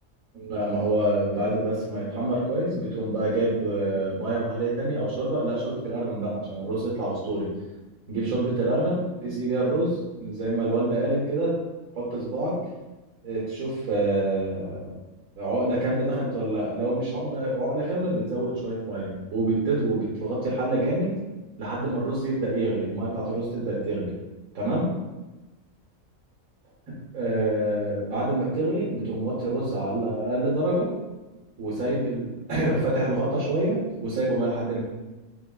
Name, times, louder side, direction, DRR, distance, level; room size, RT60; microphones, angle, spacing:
voice 1, 0.3-7.5 8.1-11.6 11.9-12.6 13.2-15.0 15.4-21.1 21.6-24.1 24.5-25.0 26.9-30.9 31.6-34.8, right 1 dB, 75° right, -7 dB, 1.3 m, -26 dB
3.8 x 2.2 x 2.2 m, 1.1 s
omnidirectional pair, 1.4 m